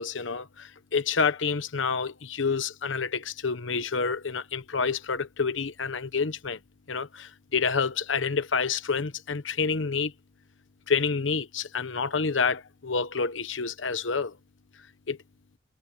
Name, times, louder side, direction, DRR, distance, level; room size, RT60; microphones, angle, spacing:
voice 1, 0.0-6.6 6.9-10.1 10.9-14.3 15.1-15.2, left 5 dB, 85° left, 1.0 m, -28 dB
head